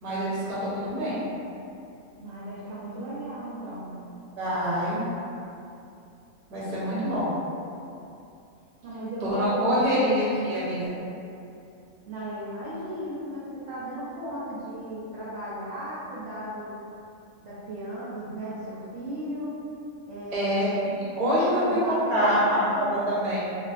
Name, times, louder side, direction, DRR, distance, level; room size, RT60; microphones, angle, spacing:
voice 1, 0.0-1.2 4.4-5.0 6.5-7.3 9.2-10.9 20.3-20.7 21.2-23.4, equal, 35° right, -10 dB, 0.7 m, -25 dB
voice 2, 2.2-3.9 8.8-9.9 12.1-16.7 17.4-19.5 20.1-20.7 21.5-22.9, right 1 dB, 65° right, -10 dB, 0.9 m, -35 dB
2.5 x 2.2 x 2.4 m, 2.6 s
omnidirectional pair, 1.4 m